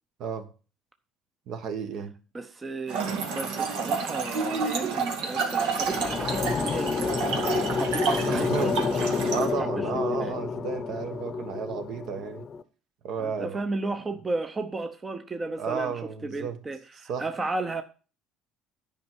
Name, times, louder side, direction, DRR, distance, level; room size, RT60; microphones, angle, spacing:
voice 1, 1.5-2.1 8.3-8.8 9.3-12.5 13.0-13.6 15.6-16.6 17.1-17.3, right 6 dB, 60° right, 1.3 m, -32 dB
voice 2, 2.3-6.9 7.7-9.9 10.2-10.3 13.2-17.8, right 2 dB, 20° right, 0.7 m, -34 dB
Trickle dribble / Fill (with liquid), 2.9-9.5, right 5 dB, 80° right, 2.2 m, -29 dB
sound 1, 5.4-12.6, left 5 dB, 30° left, 0.7 m, -29 dB
10.0 x 5.4 x 6.1 m
cardioid pair, 130°, 0 cm